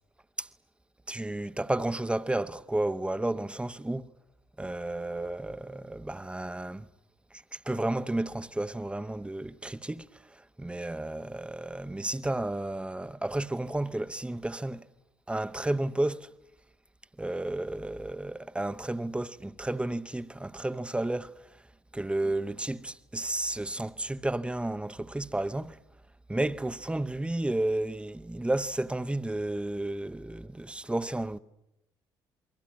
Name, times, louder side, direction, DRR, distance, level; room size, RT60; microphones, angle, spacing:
voice 1, 1.1-4.1 4.6-6.9 7.3-14.9 15.3-16.3 17.2-21.6 21.9-25.8 26.3-31.4, right 1 dB, 10° right, 1.1 m, -32 dB
28.0 x 23.5 x 8.7 m
figure-of-eight pair, 50°, 11 cm